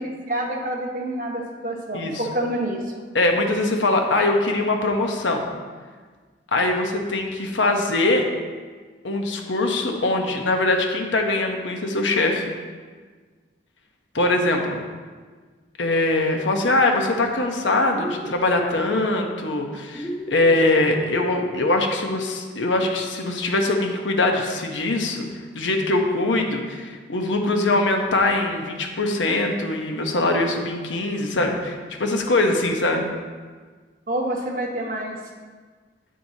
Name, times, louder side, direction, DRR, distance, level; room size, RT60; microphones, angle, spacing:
voice 1, 0.0-2.9 34.1-35.2, right 1 dB, 45° right, 0 dB, 1.1 m, -27 dB
voice 2, 3.1-5.5 6.5-8.2 9.0-12.4 14.1-14.8 15.8-25.3 25.5-33.1, left 2 dB, 90° left, 2 dB, 1.0 m, -22 dB
sound 1, 17.9-18.8 19.9-20.8, equal, 10° left, 0.5 m, -33 dB
9.5 x 7.5 x 2.8 m, 1.5 s
head